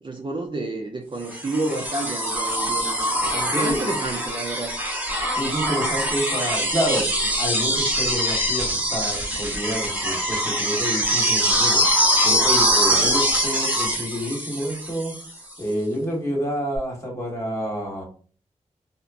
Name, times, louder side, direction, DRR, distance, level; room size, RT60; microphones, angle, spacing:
voice 1, 0.0-4.7, right 2 dB, 35° right, 2 dB, 0.5 m, -30 dB
sound 1, 1.3-15.3 16.8-16.9, equal, 10° right, 1.0 m, -23 dB
voice 2, 3.5-3.9 5.4-11.8 12.2-15.1 15.6-18.0, equal, 20° left, -1 dB, 1.3 m, -28 dB
2.9 x 2.1 x 2.4 m, 0.42 s
cardioid pair, 50°, 13 cm